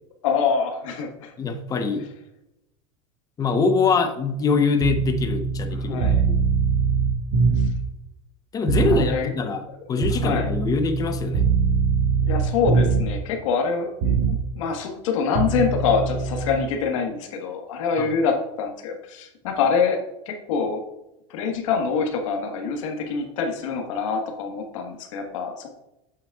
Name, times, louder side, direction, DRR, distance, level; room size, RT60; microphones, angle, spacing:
voice 1, 0.2-1.3 5.7-6.2 8.8-9.3 10.1-10.5 12.2-20.0 20.2-20.8 21.3-25.7, left 5 dB, 85° left, 3 dB, 1.4 m, -25 dB
voice 2, 1.4-2.1 3.4-6.4 8.5-9.6 9.9-11.5 18.0-18.1, left 4 dB, 20° left, 8 dB, 0.8 m, -23 dB
sound 1, 4.8-7.9 8.7-9.1 10.0-13.2 14.0-14.4 15.3-16.6, right 5 dB, 60° right, 1.3 m, -22 dB
8.5 x 7.3 x 2.4 m, 0.90 s
supercardioid pair, 140°, 16 cm